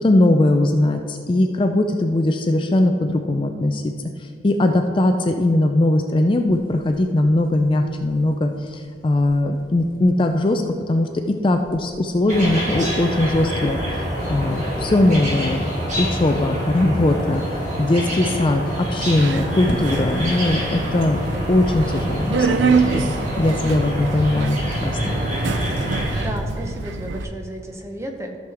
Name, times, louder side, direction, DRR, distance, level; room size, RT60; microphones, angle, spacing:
voice 1, 0.0-3.9 4.2-13.8 14.3-15.7 16.0-21.2 21.5-25.2, left 1 dB, 30° left, 5 dB, 0.4 m, -20 dB
sound 1, 6.4-24.4, left 1 dB, 50° left, 0.8 m, -41 dB
sound 2, 12.3-26.2, equal, 40° right, 2.2 m, -26 dB
Subway metro underground, 19.1-27.2, right 5 dB, 90° right, 0.5 m, -26 dB
voice 2, 26.2-28.4, right 1 dB, 15° right, 3 dB, 0.8 m, -33 dB
14.0 x 6.4 x 3.5 m, 2.1 s
head